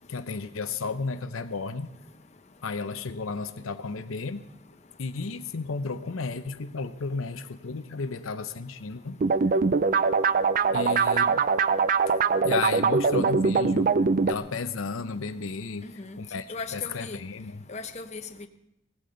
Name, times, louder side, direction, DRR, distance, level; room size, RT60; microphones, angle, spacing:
voice 1, 0.1-1.9 2.6-4.5 5.0-9.2 10.7-11.4 12.1-12.2 12.4-14.0 14.3-16.5 16.7-17.7, left 4 dB, 85° left, 10 dB, 0.7 m, -33 dB
sound 1, 9.2-14.3, right 4 dB, 40° right, 0.4 m, -22 dB
voice 2, 16.5-17.2 17.7-18.5, left 4 dB, 35° left, 7 dB, 0.8 m, -37 dB
18.0 x 15.0 x 3.9 m, 0.88 s
head